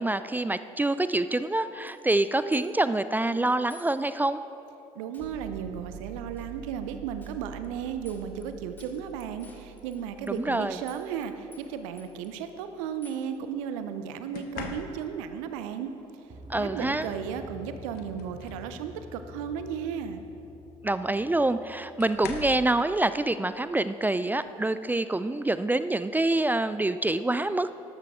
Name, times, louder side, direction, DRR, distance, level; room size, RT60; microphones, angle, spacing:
voice 1, 0.0-4.4 10.3-10.8 16.5-17.1 20.8-27.8, right 2 dB, 10° right, 13 dB, 0.3 m, -26 dB
sound 1, 1.9-2.2 2.5-2.9 3.7-3.9 4.3-4.4 5.1-5.4 6.4-6.5 7.2-7.4 7.6-7.7 8.1-8.5 8.8-10.6 10.9-11.3 11.5-12.4 13.0-13.3, left 1 dB, 10° left, 2.0 m, -54 dB
voice 2, 5.0-15.9 16.6-20.2, right 8 dB, 70° right, 9 dB, 0.7 m, -35 dB
sound 2, 5.2-13.0 16.3-22.4, right 3 dB, 40° right, 1.4 m, -47 dB
sound 3, 9.4-9.7 11.0-11.3 14.3-15.3 17.1-17.2 17.6-18.7 19.2-19.5 20.8-20.9 22.0-22.7 24.4-24.6 25.1-25.4, left 5 dB, 60° left, 1.0 m, -42 dB
12.5 x 12.5 x 3.7 m, 3.0 s
figure-of-eight pair, 55°, 17 cm